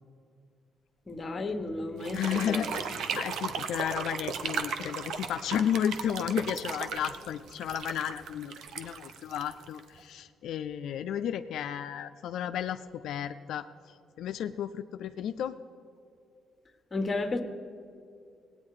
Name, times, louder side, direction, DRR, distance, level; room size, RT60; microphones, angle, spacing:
voice 1, 1.1-2.6 16.9-17.4, left 2 dB, 30° left, 6 dB, 1.2 m, -33 dB
sound 1, 2.0-10.0, right 6 dB, 75° right, 0.8 m, -36 dB
voice 2, 2.1-15.6, left 9 dB, 80° left, 9 dB, 0.3 m, -33 dB
18.0 x 9.1 x 4.8 m, 2.5 s
cardioid pair, 90°, 0 cm